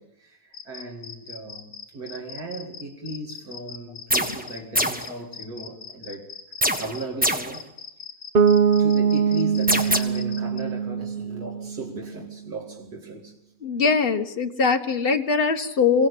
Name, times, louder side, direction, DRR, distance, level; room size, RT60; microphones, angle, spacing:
voice 1, 0.0-6.3 6.8-7.7 8.8-13.3, right 1 dB, 80° right, 3.1 m, -37 dB
sound 1, 0.5-7.1 7.5-10.6, left 6 dB, 65° left, 4.1 m, -41 dB
sound 2, 4.1-4.5 4.7-5.1 6.6-7.6 9.7-10.0, equal, 5° right, 1.4 m, -23 dB
Bass guitar, 8.3-12.2, right 6 dB, 40° right, 1.3 m, -22 dB
voice 2, 13.6-16.1, left 5 dB, 40° left, 1.6 m, -22 dB
24.5 x 17.0 x 8.5 m
omnidirectional pair, 1.6 m